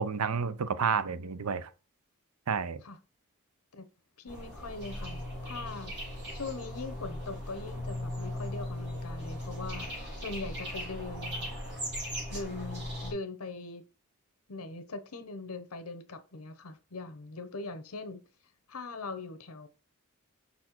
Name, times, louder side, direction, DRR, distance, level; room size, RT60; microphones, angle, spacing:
voice 1, 0.0-1.7 2.5-2.8, right 6 dB, 85° right, 0.6 m, -30 dB
voice 2, 4.2-5.9 6.3-9.9 10.2-11.5 12.3-13.8 14.5-18.2 18.7-19.7, left 3 dB, 80° left, 0.9 m, -41 dB
sound 1, 4.3-13.1, left 1 dB, 55° right, 3.9 m, -38 dB
5.6 x 4.3 x 4.4 m
head